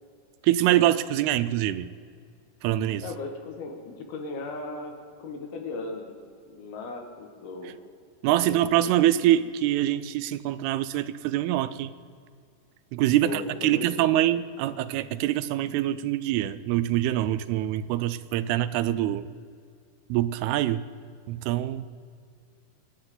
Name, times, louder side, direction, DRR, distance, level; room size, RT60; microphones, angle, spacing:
voice 1, 0.4-1.9 2.6-3.1 8.2-11.9 12.9-19.3 20.1-20.9 21.3-21.9, right 13 dB, 90° right, 14 dB, 2.6 m, -24 dB
voice 2, 3.0-4.9 5.2-6.2 6.5-7.8 8.4-8.6 13.2-14.1, left 3 dB, 75° left, 3 dB, 3.6 m, -37 dB
25.5 x 10.5 x 3.9 m, 2.2 s
omnidirectional pair, 4.5 m